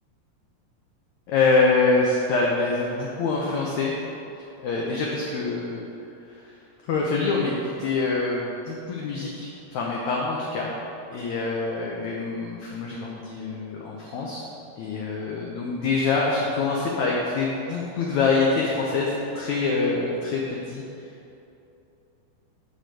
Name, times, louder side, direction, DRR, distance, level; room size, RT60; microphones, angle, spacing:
voice 1, 1.3-4.0 4.6-5.8 6.3-6.4 6.8-10.7 11.1-14.5 14.8-21.1, left 3 dB, 70° left, -3 dB, 1.8 m, -25 dB
8.5 x 5.0 x 7.6 m, 2.8 s
omnidirectional pair, 4.2 m